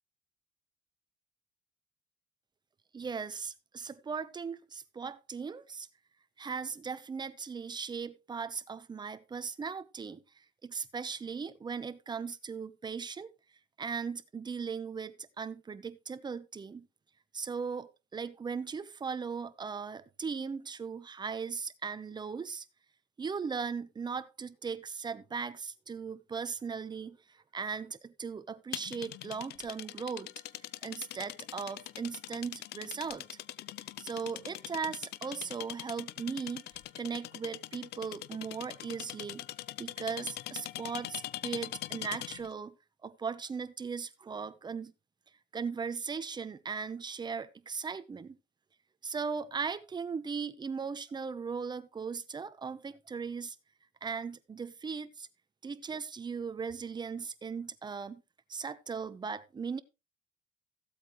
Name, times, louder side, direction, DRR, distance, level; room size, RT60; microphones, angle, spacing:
voice 1, 2.9-5.9 6.4-13.3 13.8-16.9 17.3-22.6 23.2-30.3 30.8-33.3 34.0-36.6 37.0-39.5 39.8-42.7 43.0-44.9 45.5-48.4 49.0-53.6 54.0-55.3 55.6-58.2 58.5-59.8, right 5 dB, 25° right, 0.8 m, -38 dB
sound 1, 28.7-42.5, left 16 dB, 80° left, 0.6 m, -42 dB
14.5 x 8.2 x 3.1 m
cardioid pair, 110°, 17 cm